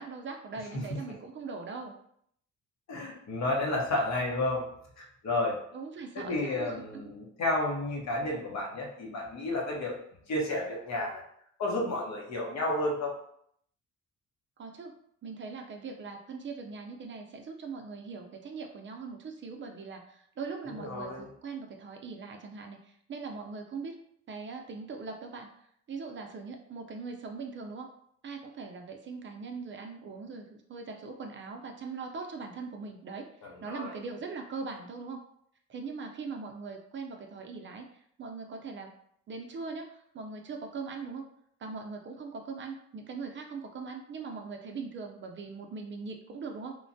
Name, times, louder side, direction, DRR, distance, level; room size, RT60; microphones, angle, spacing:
voice 1, 0.0-1.9 5.7-6.8 14.6-14.9 15.2-24.0 24.3-25.5 25.9-27.9 28.2-33.3 33.6-35.2 35.7-38.9 39.3-41.2 41.6-46.8, right 4 dB, 40° right, 3 dB, 0.4 m, -41 dB
voice 2, 2.9-4.6 5.0-5.6 6.1-9.9 10.3-11.2 11.6-13.1 20.7-21.3 33.4-33.9, left 2 dB, 65° left, -1 dB, 0.9 m, -31 dB
3.1 x 2.1 x 2.6 m, 0.68 s
cardioid pair, 90°, 30 cm